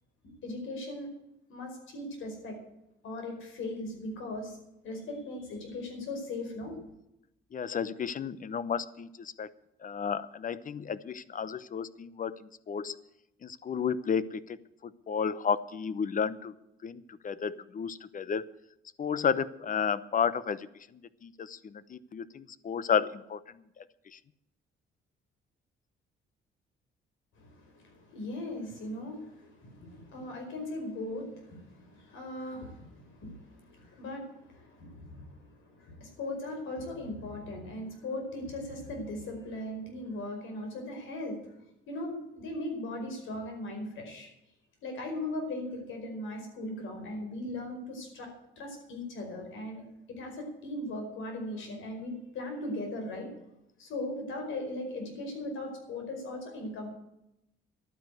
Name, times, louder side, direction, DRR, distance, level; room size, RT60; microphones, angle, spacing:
voice 1, 0.4-1.1 1.5-2.6 3.0-4.6 4.8-6.8 27.3-41.5 41.9-44.3 44.8-48.3 48.6-49.8 50.2-53.3 53.8-56.9, left 1 dB, 80° left, 3 dB, 4.9 m, -38 dB
voice 2, 7.5-9.5 9.8-13.0 13.4-14.6 14.8-16.5 16.8-18.5 19.0-20.7 20.9-23.4 23.8-23.9 24.1-24.2, left 7 dB, 40° left, 17 dB, 0.8 m, -32 dB
11.5 x 9.4 x 7.9 m, 0.87 s
cardioid pair, 90°, 20 cm